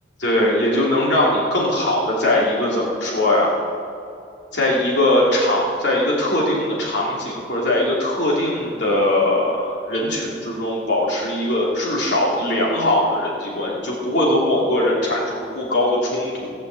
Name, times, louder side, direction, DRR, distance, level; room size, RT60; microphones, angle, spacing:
voice 1, 0.2-3.5 4.5-16.5, left 1 dB, 70° left, -5 dB, 3.2 m, -20 dB
18.0 x 7.0 x 7.8 m, 2.5 s
head